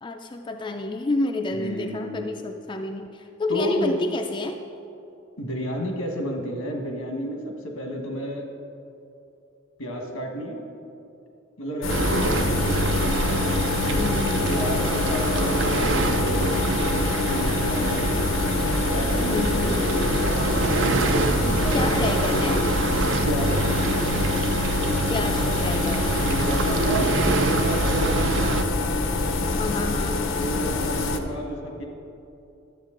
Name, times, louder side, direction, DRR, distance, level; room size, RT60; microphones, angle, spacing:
voice 1, 0.0-4.6 12.1-12.5 13.9-14.5 19.3-19.9 21.7-22.7 25.1-26.3 29.5-30.2, left 2 dB, 20° left, 4 dB, 0.3 m, -29 dB
voice 2, 1.6-2.3 3.5-4.0 5.4-8.5 9.8-10.6 11.6-12.9 14.5-16.6 17.3-18.2 18.6-20.8 21.4-22.1 23.2-23.8 26.3-28.5 30.4-31.8, equal, 90° left, 2 dB, 1.4 m, -31 dB
sound 1, 11.8-31.2, left 3 dB, 70° left, 0.6 m, -25 dB
sound 2, 11.9-28.6, right 3 dB, 60° right, 0.5 m, -26 dB
11.5 x 8.0 x 3.8 m, 2.7 s
head